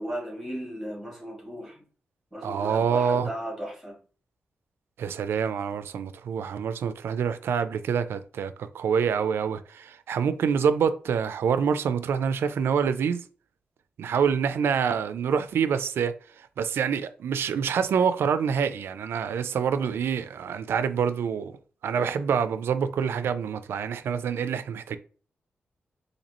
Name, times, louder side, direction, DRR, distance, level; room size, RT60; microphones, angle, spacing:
voice 1, 0.0-1.8 2.3-4.0, equal, ahead, 1.7 m, -36 dB
voice 2, 2.4-3.3 5.0-13.2 14.0-21.6 21.8-25.0, right 7 dB, 90° right, 0.3 m, -26 dB
4.1 x 2.7 x 2.9 m
wide cardioid pair, 135°, 4 cm